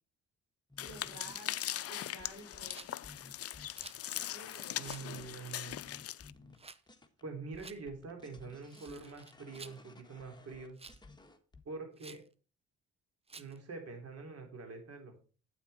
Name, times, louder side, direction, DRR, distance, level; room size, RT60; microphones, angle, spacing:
sound 1, 0.7-7.2 7.5-11.6, left 3 dB, 15° left, 1.5 m, -58 dB
sound 2, 0.8-6.3, left 12 dB, 50° left, 0.5 m, -40 dB
voice 1, 0.8-2.9 4.3-4.9, right 1 dB, 90° right, 1 dB, 5.4 m, -52 dB
Rattle, 2.6-2.9 3.7-4.1 4.8-5.1 6.5-6.8 7.6-7.8 8.6-9.8 10.8-11.1 12.0-12.3 13.3-13.6, right 4 dB, 20° right, 0.7 m, -52 dB
voice 2, 4.8-5.8 7.2-10.8 11.6-12.2 13.4-15.2, right 4 dB, 55° right, 4 dB, 3.3 m, -45 dB
9.1 x 8.6 x 4.2 m, 0.36 s
cardioid pair, 90°, 30 cm